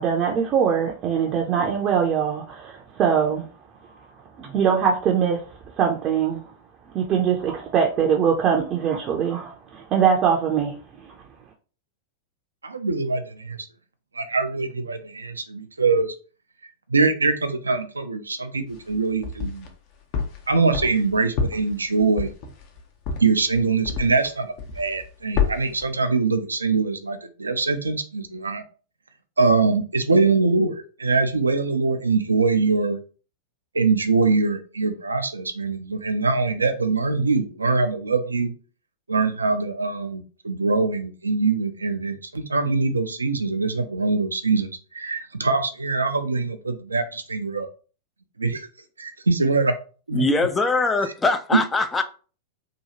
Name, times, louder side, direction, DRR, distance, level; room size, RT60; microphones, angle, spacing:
voice 1, 0.0-3.5 4.4-5.4 5.8-6.4 6.9-10.7 11.0-11.1, right 7 dB, 35° right, -1 dB, 0.5 m, -22 dB
voice 2, 12.6-13.7 14.1-16.2 16.9-19.7 20.5-22.3 23.2-28.6 29.4-33.0 33.7-38.5 39.1-47.7 48.4-48.7 49.0-49.7 50.1-50.2 51.5-51.6, right 4 dB, 85° right, 8 dB, 0.4 m, -23 dB
sound 1, 18.7-19.7 20.1-24.3 24.6-25.1 25.3-25.8, left 6 dB, 45° left, 0.6 m, -28 dB
voice 3, 50.1-52.0, left 3 dB, 15° left, 8 dB, 0.3 m, -22 dB
2.9 x 2.3 x 2.8 m, 0.37 s
figure-of-eight pair, 95°, 0 cm